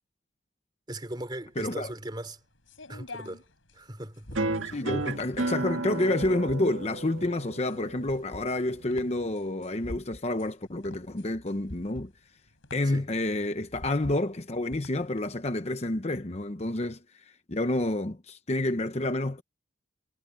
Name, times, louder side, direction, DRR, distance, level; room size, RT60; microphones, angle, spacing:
voice 1, 0.9-2.4 2.9-3.4 3.7-4.4 4.7-4.9 12.8-13.0, right 1 dB, 20° right, 3.4 m, -39 dB
sound 1, 1.3-15.2, left 1 dB, 85° left, 5.6 m, -47 dB
voice 2, 1.6-1.9 4.6-12.1 12.7-17.0 17.5-19.4, left 1 dB, 35° left, 0.9 m, -29 dB
sound 2, 4.3-9.3, right 2 dB, 85° right, 1.9 m, -34 dB
head